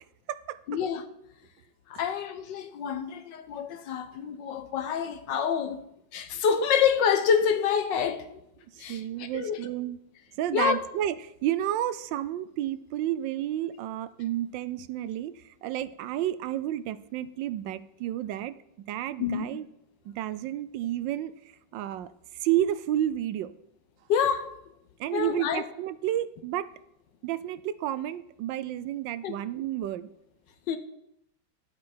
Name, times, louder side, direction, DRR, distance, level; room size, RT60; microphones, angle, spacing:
voice 1, 0.7-1.0 1.9-5.8 6.1-8.2 8.8-9.0 9.3-9.6 10.5-10.8 19.2-19.4 24.1-24.5 25.1-25.6 29.2-29.3 30.7-30.8, left 7 dB, 70° left, 1.5 m, -27 dB
voice 2, 8.7-10.0 10.4-18.6 18.9-19.7 20.0-21.3 21.7-23.5 25.0-26.7 27.2-30.1, right 12 dB, 80° right, 1.2 m, -31 dB
11.5 x 8.5 x 4.4 m
omnidirectional pair, 2.1 m